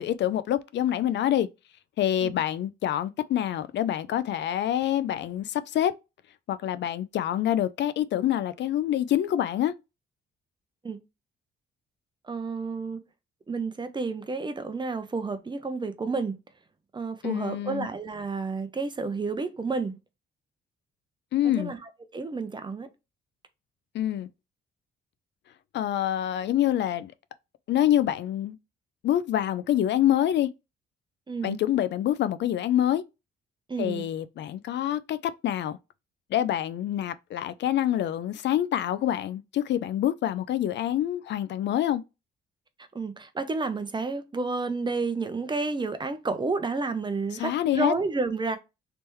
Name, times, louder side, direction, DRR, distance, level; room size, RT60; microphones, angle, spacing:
voice 1, 0.0-1.5 2.0-5.9 6.5-9.7 17.2-17.9 21.3-21.7 23.9-24.3 25.7-27.1 27.7-28.5 29.0-30.5 31.4-33.0 33.8-35.8 36.3-42.0 47.3-47.9, left 11 dB, 65° left, 0.4 m, -26 dB
voice 2, 12.2-13.0 13.5-16.4 16.9-20.0 21.4-22.9 31.3-31.6 33.7-34.1 42.9-48.6, right 3 dB, 25° right, 0.7 m, -30 dB
3.3 x 3.0 x 3.0 m
cardioid pair, 90°, 20 cm